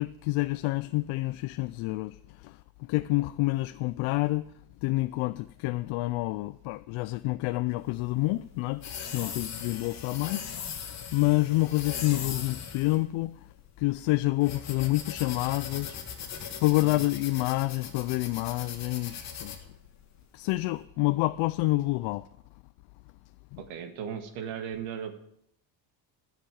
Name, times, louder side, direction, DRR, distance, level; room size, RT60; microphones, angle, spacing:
voice 1, 0.0-4.5 4.8-10.5 10.8-13.5 13.8-16.0 16.6-19.7 20.3-22.3 23.5-23.6, left 20 dB, 80° left, 0.5 m, -28 dB
sound 1, 7.8-20.8, left 7 dB, 35° left, 1.7 m, -40 dB
voice 2, 23.6-25.2, right 8 dB, 70° right, 1.9 m, -37 dB
13.0 x 6.9 x 9.0 m
cardioid pair, 180°, 48 cm